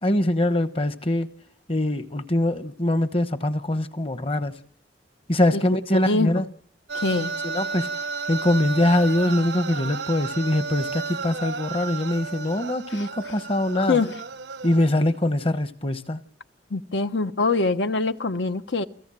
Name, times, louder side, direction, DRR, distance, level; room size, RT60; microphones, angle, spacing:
voice 1, 0.0-1.3 1.7-4.6 5.3-6.5 7.4-7.9 8.3-14.0 14.6-16.2, left 1 dB, 30° left, 1.0 m, -23 dB
voice 2, 5.9-6.5 6.9-7.3 12.9-13.3 13.8-14.2 16.7-18.9, left 3 dB, 80° left, 1.0 m, -24 dB
sound 1, 6.9-15.0, right 5 dB, 80° right, 1.0 m, -33 dB
29.0 x 18.0 x 7.6 m
head